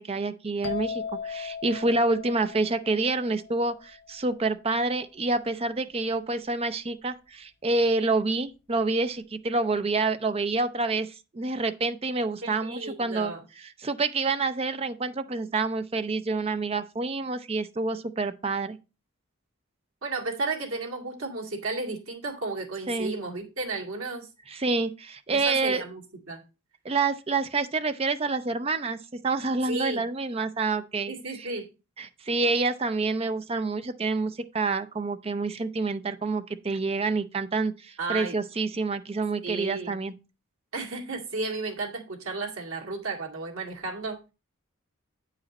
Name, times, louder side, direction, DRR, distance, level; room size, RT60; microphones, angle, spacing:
voice 1, 0.0-13.3 13.6-18.8 22.9-23.1 24.5-25.8 26.8-29.0 29.2-31.5 32.0-40.1, right 3 dB, 25° right, 0.5 m, -28 dB
sound 1, 0.6-4.3, left 6 dB, 50° left, 0.7 m, -38 dB
voice 2, 12.4-13.4 20.0-24.3 25.3-26.0 26.3-26.4 29.7-30.0 31.1-31.7 38.0-38.4 39.4-40.0 40.7-44.2, right 3 dB, 85° right, 2.1 m, -33 dB
8.5 x 5.0 x 4.1 m
head